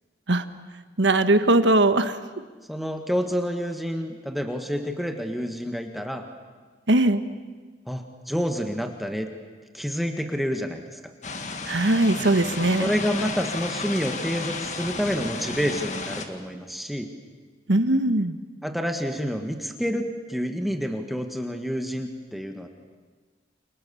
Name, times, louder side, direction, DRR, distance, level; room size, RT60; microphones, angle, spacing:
voice 1, 1.0-2.2 6.9-7.2 11.7-12.9 17.7-18.4, right 2 dB, 85° right, 10 dB, 1.4 m, -20 dB
voice 2, 2.7-6.3 7.9-9.3 9.7-11.0 12.8-17.1 18.6-22.7, equal, ahead, 4 dB, 1.7 m, -28 dB
sound 1, 11.2-16.3, left 3 dB, 40° left, 1.9 m, -33 dB
29.5 x 28.5 x 7.1 m, 1.4 s
head